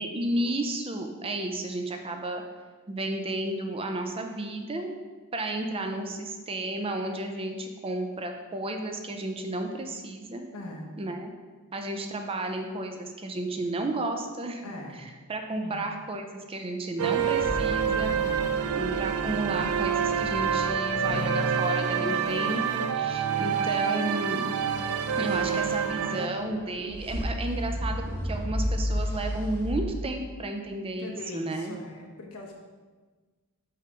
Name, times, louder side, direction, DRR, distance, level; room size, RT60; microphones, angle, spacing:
voice 1, 0.0-2.4 2.9-5.0 5.3-10.5 11.0-11.3 11.7-14.6 15.3-18.2 18.7-24.5 25.2-31.8, right 2 dB, 25° right, 4 dB, 0.5 m, -32 dB
voice 2, 10.5-11.0 14.6-15.0 15.6-15.8 18.0-18.4 23.3-23.7 31.0-32.6, left 2 dB, 80° left, 0 dB, 1.0 m, -41 dB
sound 1, 17.0-26.3, right 7 dB, 80° right, 0.4 m, -27 dB
sound 2, 17.1-21.2 24.5-29.9, equal, 10° left, 1.2 m, -34 dB
5.6 x 3.4 x 5.0 m, 1.3 s
head